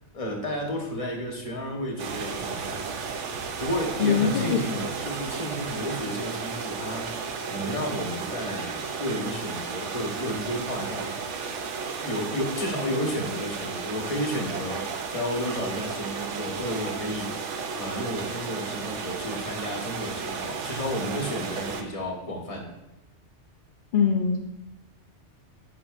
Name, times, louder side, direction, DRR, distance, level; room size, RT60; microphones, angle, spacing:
voice 1, 0.1-2.8 3.6-11.3 12.0-17.3 17.8-22.7, equal, 30° left, 1 dB, 1.1 m, -32 dB
sound 1, 2.0-21.8, right 5 dB, 80° right, 1.0 m, -34 dB
voice 2, 4.0-4.6 23.9-24.4, left 6 dB, 55° left, 1 dB, 0.6 m, -22 dB
7.9 x 5.9 x 2.4 m, 0.95 s
omnidirectional pair, 1.2 m